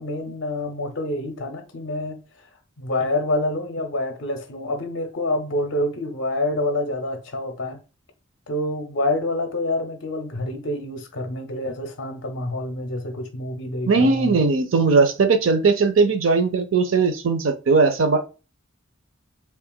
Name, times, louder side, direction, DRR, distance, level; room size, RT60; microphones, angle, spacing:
voice 1, 0.0-2.2 2.8-7.8 8.5-14.4, left 1 dB, 60° left, 0.6 m, -27 dB
voice 2, 13.9-18.2, right 4 dB, 70° right, 0.6 m, -19 dB
5.6 x 2.4 x 2.3 m
head